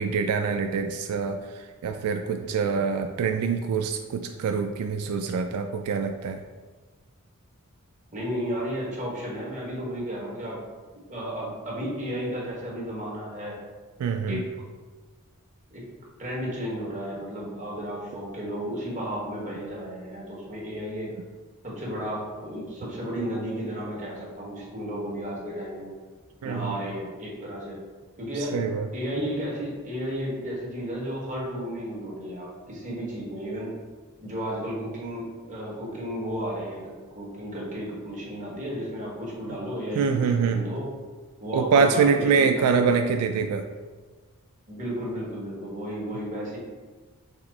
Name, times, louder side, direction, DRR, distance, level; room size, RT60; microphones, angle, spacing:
voice 1, 0.0-6.4 14.0-14.4 26.4-26.7 28.5-28.9 40.0-40.6 41.5-43.7, right 5 dB, 90° right, 8 dB, 0.3 m, -25 dB
voice 2, 8.1-10.6 11.1-13.6 14.3-14.5 15.7-15.9 16.2-21.1 21.6-25.9 26.4-27.8 28.2-28.6 28.9-33.7 34.2-40.9 41.4-42.9 44.7-46.6, equal, 35° right, -5 dB, 1.2 m, -33 dB
5.9 x 2.0 x 4.0 m, 1.3 s
head